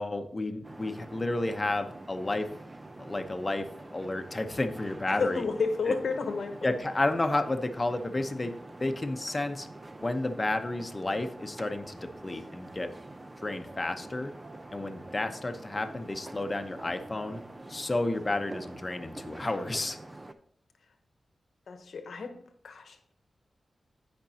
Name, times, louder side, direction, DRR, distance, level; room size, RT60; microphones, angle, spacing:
voice 1, 0.0-2.5 3.0-5.4 5.9-6.0 6.6-9.7 10.0-13.0 13.4-14.3 14.7-17.4 17.7-20.0, left 2 dB, 30° left, 7 dB, 0.9 m, -31 dB
sound 1, 0.6-20.3, right 2 dB, 30° right, 0.6 m, -46 dB
voice 2, 5.1-6.8 21.7-22.4 22.6-23.0, left 4 dB, 80° left, 7 dB, 1.0 m, -31 dB
15.5 x 5.2 x 2.8 m, 0.64 s
cardioid pair, 70°, 0 cm